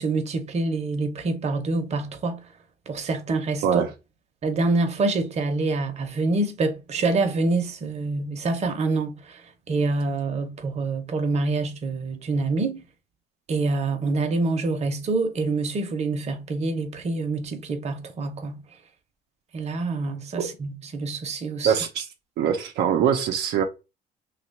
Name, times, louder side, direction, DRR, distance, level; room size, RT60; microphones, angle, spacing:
voice 1, 0.0-2.4 2.9-3.8 4.4-9.4 9.7-12.8 13.5-18.6 19.5-21.7, right 3 dB, 40° right, 0.8 m, -26 dB
voice 2, 21.6-22.1 22.4-23.6, right 8 dB, 80° right, 0.6 m, -23 dB
2.9 x 2.4 x 4.1 m
cardioid pair, 110°, 17 cm